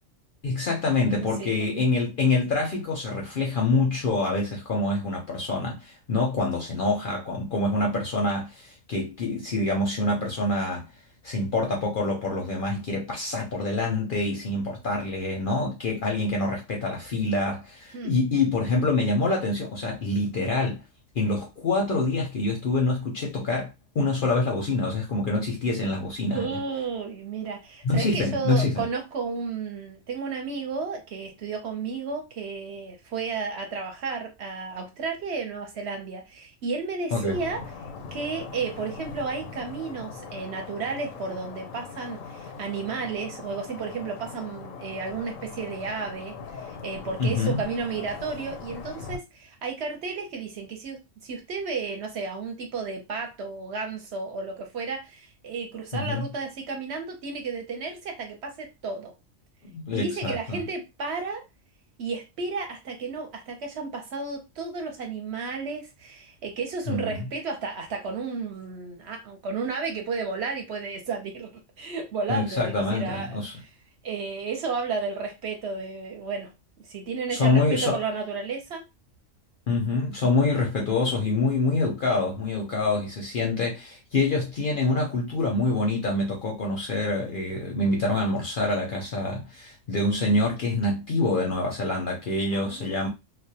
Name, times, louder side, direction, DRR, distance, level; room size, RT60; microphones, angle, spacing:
voice 1, 0.4-10.9 11.2-20.8 21.1-26.6 27.8-28.9 37.1-37.4 47.2-47.6 55.9-56.3 59.6-60.6 66.9-67.3 72.3-73.5 77.3-78.0 79.7-93.1, left 2 dB, 55° left, 0.6 m, -26 dB
voice 2, 1.4-1.9 17.9-18.2 26.3-37.6 38.1-59.1 59.9-61.4 62.0-71.5 71.8-73.7 74.0-76.5 76.8-78.8 92.5-93.1, right 4 dB, 60° right, 0.9 m, -33 dB
sound 1, 37.3-49.2, left 5 dB, 90° left, 1.0 m, -40 dB
2.4 x 2.1 x 2.7 m
omnidirectional pair, 1.3 m